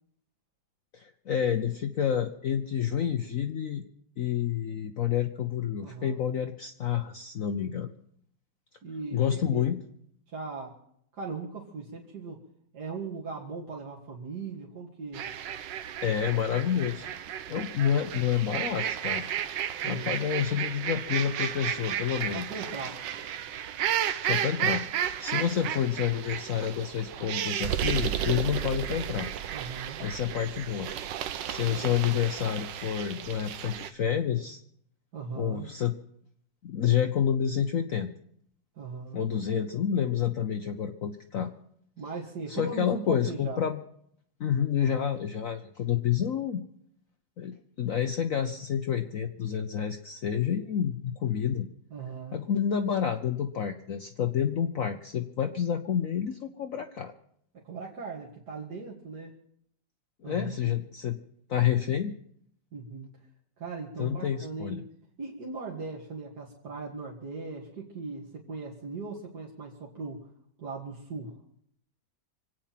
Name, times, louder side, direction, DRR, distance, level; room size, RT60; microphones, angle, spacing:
voice 1, 0.9-3.8 4.2-7.9 9.1-9.8 16.0-17.1 17.5-19.3 19.8-22.5 24.2-24.8 25.2-29.3 30.0-30.9 31.5-34.6 35.3-35.9 36.6-38.1 39.1-41.5 42.5-43.8 44.4-46.6 47.4-51.7 52.3-57.1 60.2-61.2 61.5-62.1 64.0-64.8, left 9 dB, 55° left, 6 dB, 1.0 m, -29 dB
voice 2, 5.8-6.2 8.8-9.6 10.3-10.7 11.1-12.4 12.7-15.3 19.8-20.1 22.3-23.0 29.5-30.0 35.1-35.7 38.8-39.2 42.0-43.6 47.9-48.0 51.9-52.4 57.6-59.3 60.2-60.8 62.7-63.1 63.6-64.8 65.2-70.3 70.6-71.4, right 4 dB, 60° right, -3 dB, 2.5 m, -39 dB
sound 1, 15.1-33.9, right 10 dB, 80° right, 1.4 m, -33 dB
25.5 x 9.0 x 5.9 m, 0.70 s
omnidirectional pair, 2.0 m